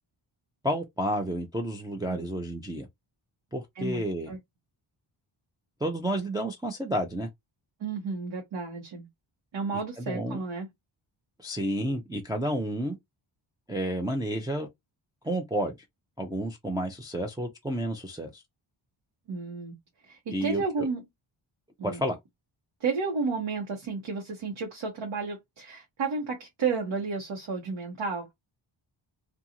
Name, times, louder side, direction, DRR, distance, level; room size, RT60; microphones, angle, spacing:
voice 1, 0.6-2.9 3.5-4.3 5.8-7.3 10.1-10.4 11.4-12.9 13.7-14.7 15.2-15.7 16.2-18.4 20.3-20.9 21.8-22.2, right 1 dB, 10° right, 0.3 m, -30 dB
voice 2, 3.7-4.4 7.8-9.1 9.5-10.7 19.3-19.8 20.0-21.0 21.8-22.0 22.8-28.3, right 4 dB, 65° right, 0.9 m, -32 dB
2.5 x 2.3 x 2.8 m
wide cardioid pair, 170°, 48 cm